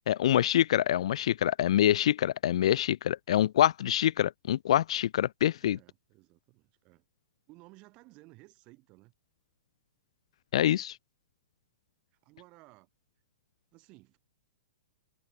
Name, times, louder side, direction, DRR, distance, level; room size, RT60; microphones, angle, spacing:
voice 1, 0.1-5.8 10.5-11.0, left 11 dB, 50° left, 0.4 m, -25 dB
voice 2, 5.6-7.0 7.5-9.1 12.1-12.9 13.7-14.2, right 23 dB, 25° right, 7.6 m, -57 dB
hypercardioid pair, 175°, 4 cm